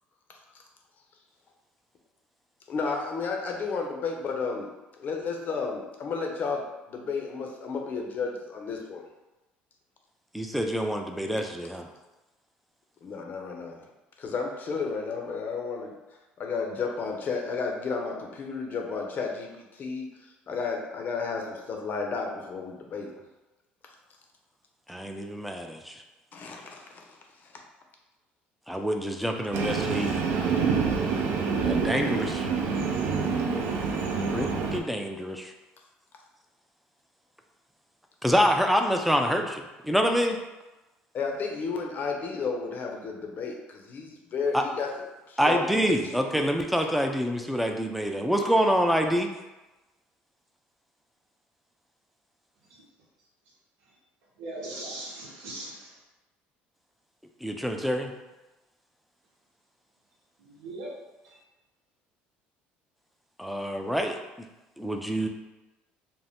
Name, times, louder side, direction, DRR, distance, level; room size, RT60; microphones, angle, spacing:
voice 1, 2.7-4.7 5.0-6.6 6.9-9.0 13.0-13.8 14.2-15.9 16.4-20.1 20.5-23.1 26.3-27.0 27.4-27.5 41.1-44.9 45.3-46.2, left 4 dB, 45° left, 1 dB, 0.6 m, -32 dB
voice 2, 10.3-11.9 24.9-26.0 28.7-30.5 31.6-32.5 34.3-35.5 38.2-40.4 44.5-44.6 45.4-49.3 57.4-58.1 63.4-64.2 64.8-65.3, equal, ahead, 3 dB, 0.3 m, -26 dB
Train, 29.5-34.8, right 5 dB, 65° right, 0.4 m, -27 dB
voice 3, 54.4-56.0 60.4-60.9 61.2-61.4, right 2 dB, 85° right, -4 dB, 0.8 m, -40 dB
2.6 x 2.1 x 3.3 m, 1.1 s
supercardioid pair, 90°, 4 cm